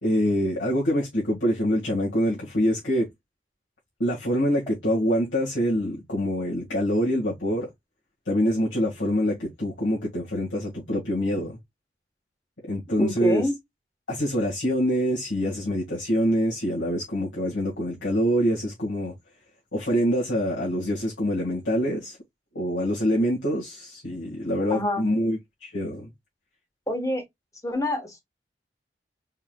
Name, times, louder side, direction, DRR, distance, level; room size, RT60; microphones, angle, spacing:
voice 1, 0.0-3.1 4.0-7.7 8.3-11.6 12.6-13.5 14.1-19.1 19.7-22.2 22.6-26.1, equal, 85° left, 1.9 m, -25 dB
voice 2, 13.0-13.5 24.7-25.0 26.9-27.2 27.6-28.2, equal, 20° left, 1.4 m, -26 dB
4.4 x 3.9 x 2.3 m
head